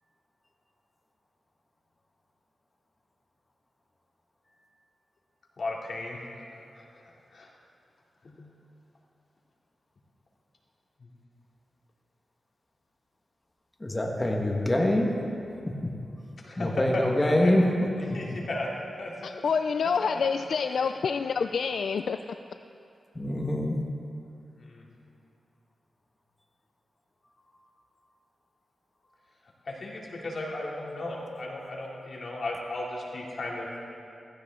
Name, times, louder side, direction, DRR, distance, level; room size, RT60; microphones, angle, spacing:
voice 1, 5.6-7.5 8.2-8.4 11.0-11.1 16.4-17.0 17.4-17.5 17.9-18.7 19.0-19.5 19.8-21.1 21.6-21.7 24.6-24.9 29.6-33.7, left 2 dB, 60° left, -3 dB, 2.7 m, -36 dB
voice 2, 13.8-15.1 15.7-15.8 16.6-17.6 23.1-23.7, left 1 dB, 20° left, 0 dB, 1.6 m, -25 dB
voice 3, 19.2-22.2, left 6 dB, 80° left, 8 dB, 0.3 m, -27 dB
15.5 x 15.5 x 3.7 m, 2.6 s
wide cardioid pair, 85°, 0 cm